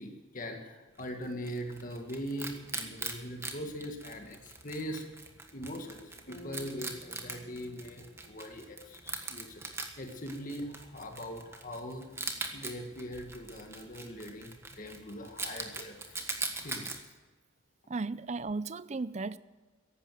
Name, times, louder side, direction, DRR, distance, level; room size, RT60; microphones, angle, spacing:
voice 1, 0.0-5.2 5.5-12.1 12.5-16.2 16.6-17.0, equal, 40° left, 1.7 m, -41 dB
Wild animals, 1.0-17.0, right 3 dB, 10° right, 1.4 m, -42 dB
sound 1, 5.5-10.0, right 2 dB, 65° left, 3.0 m, -55 dB
voice 2, 17.9-19.4, right 3 dB, 35° right, 0.5 m, -35 dB
14.5 x 11.5 x 7.6 m
head